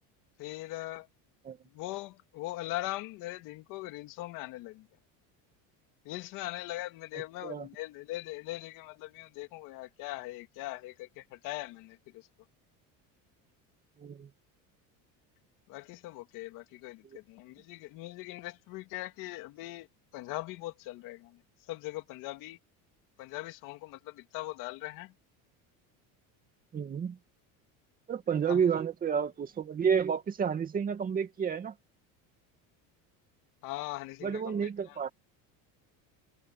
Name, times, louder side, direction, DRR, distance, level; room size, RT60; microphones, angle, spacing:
voice 1, 0.4-1.1 1.7-4.9 6.0-12.3 15.7-19.9 20.1-21.4 21.7-22.6 23.2-25.1 28.5-28.7 33.6-35.0, left 18 dB, 60° left, 2.7 m, -41 dB
voice 2, 14.0-14.3 26.7-27.2 28.1-31.7 34.2-35.1, right 7 dB, 25° right, 2.4 m, -30 dB
cardioid pair, 175°, 36 cm